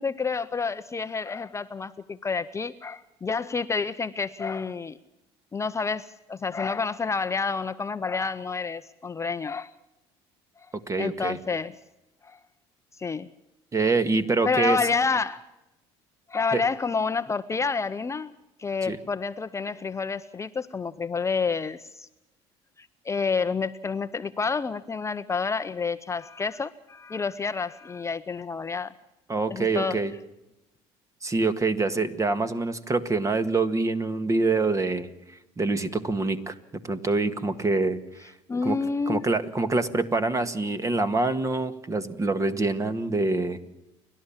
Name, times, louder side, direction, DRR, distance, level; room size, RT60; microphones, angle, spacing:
voice 1, 0.0-5.0 5.5-9.7 11.0-11.7 12.2-12.4 13.0-13.3 14.4-15.4 16.3-22.1 22.8-28.9 29.5-30.0 38.5-39.2, left 5 dB, 25° left, 11 dB, 0.7 m, -29 dB
voice 2, 10.9-11.4 13.7-14.8 16.5-16.6 18.9-19.0 29.3-30.1 31.2-35.1 35.6-36.6 36.8-38.3 38.6-38.8 39.1-43.6, right 3 dB, 25° right, 11 dB, 1.8 m, -25 dB
30.0 x 12.0 x 7.3 m, 0.93 s
supercardioid pair, 90°, 13 cm